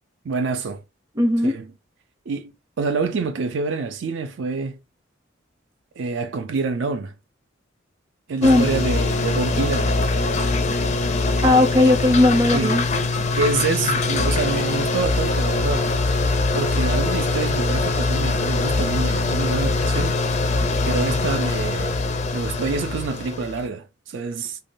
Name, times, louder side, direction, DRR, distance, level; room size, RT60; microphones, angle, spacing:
voice 1, 0.2-0.8 1.4-1.7 2.3-2.5 2.8-4.8 6.0-7.1 8.3-9.9 12.5-12.8 13.4-15.9 16.5-20.2 20.8-22.0 22.3-24.6, right 4 dB, 65° right, 0.4 m, -26 dB
voice 2, 1.2-1.5 8.4-8.7 11.4-12.8, left 2 dB, 15° right, 0.5 m, -17 dB
sound 1, 8.4-23.7, left 3 dB, 35° left, 0.4 m, -22 dB
3.3 x 2.1 x 2.5 m
head